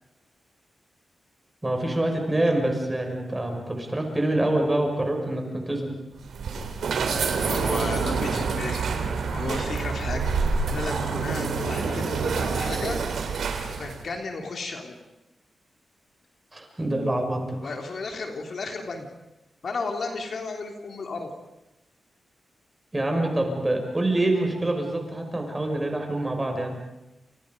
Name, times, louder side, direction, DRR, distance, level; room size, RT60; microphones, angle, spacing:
voice 1, 1.6-5.9 16.5-17.7 22.9-26.8, right 1 dB, 15° right, 2 dB, 6.1 m, -26 dB
sound 1, 6.2-14.0, right 5 dB, 90° right, 3.6 m, -27 dB
voice 2, 7.2-8.8 9.3-10.3 10.7-13.0 13.7-14.9 17.6-19.1 19.6-21.3, left 3 dB, 55° left, 3 dB, 3.4 m, -33 dB
29.5 x 29.5 x 5.4 m, 0.96 s
wide cardioid pair, 130°, 0 cm